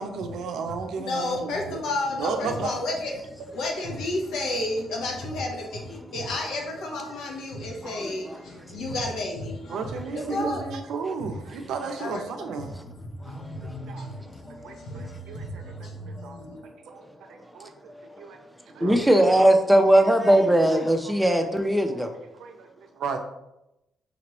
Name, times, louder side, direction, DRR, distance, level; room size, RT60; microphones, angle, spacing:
voice 1, 0.0-1.8 2.2-2.7 6.4-6.5 8.6-8.7 9.7-12.7 13.9-14.1 14.6-16.4 16.9-17.0 17.3-17.7 18.2-18.4 18.7-19.0 21.1-21.2 21.9-22.1 22.4-23.2, right 5 dB, 75° right, 0.5 m, -34 dB
voice 2, 0.7-10.7 11.2-11.7 12.0-12.2 12.6-16.6, left 2 dB, 80° left, 1.0 m, -32 dB
voice 3, 7.8-8.4 10.4-10.5 13.3-13.8 16.2-16.3 17.9-18.1 18.8-22.1, right 1 dB, 5° right, 0.5 m, -20 dB
5.1 x 3.0 x 2.9 m
cardioid pair, 90°, 0 cm